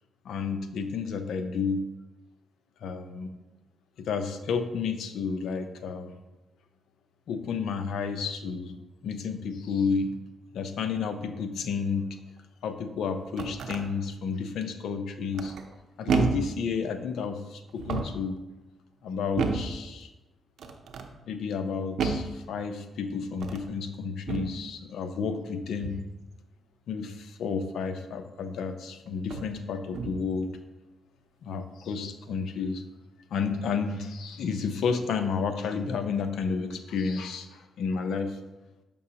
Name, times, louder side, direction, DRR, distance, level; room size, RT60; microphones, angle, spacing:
voice 1, 0.2-1.8 2.8-3.3 4.0-6.1 7.3-8.7 9.0-10.1 10.5-12.1 12.6-15.5 16.0-18.4 19.0-20.1 21.3-26.0 26.9-30.5 31.4-32.8 33.3-38.4, left 5 dB, 80° left, 8 dB, 0.5 m, -31 dB
sound 1, 13.1-13.8 15.3-15.7 16.1-16.6 17.7-18.3 19.4-19.8 20.6-21.1 22.0-22.4 23.3-23.7 24.3-24.6 25.8-26.1 28.2-28.3 29.2-29.5 29.9-30.3, right 5 dB, 75° right, 0.6 m, -31 dB
6.9 x 5.3 x 2.8 m, 1.1 s
cardioid pair, 70°, 0 cm